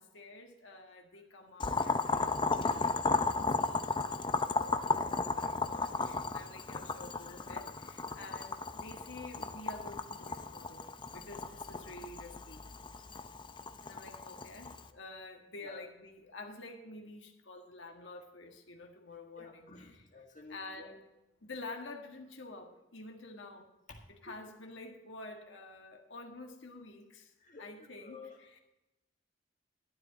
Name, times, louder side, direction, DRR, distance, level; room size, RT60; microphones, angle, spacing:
voice 1, 0.0-12.6 13.8-20.1 20.5-21.0 21.4-23.7 24.1-27.3 27.6-28.6, left 2 dB, 75° left, 1 dB, 1.7 m, -49 dB
Boiling, 1.6-14.9, left 3 dB, 25° left, 0.6 m, -34 dB
voice 2, 2.0-2.3 7.3-7.4 15.6-15.8 19.4-20.9 23.9-24.3 27.4-28.4, left 3 dB, 40° left, 1 dB, 1.7 m, -52 dB
12.0 x 11.5 x 4.1 m, 0.96 s
head